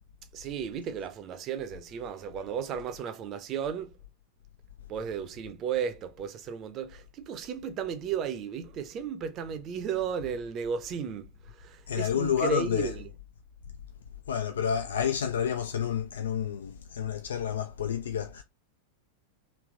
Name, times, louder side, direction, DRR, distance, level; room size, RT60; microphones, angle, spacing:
voice 1, 0.3-3.9 4.9-13.1, right 7 dB, 35° right, 0.7 m, -34 dB
voice 2, 11.9-12.9 14.3-18.4, left 8 dB, 65° left, 0.4 m, -29 dB
3.3 x 3.1 x 3.8 m
figure-of-eight pair, 90°, 0 cm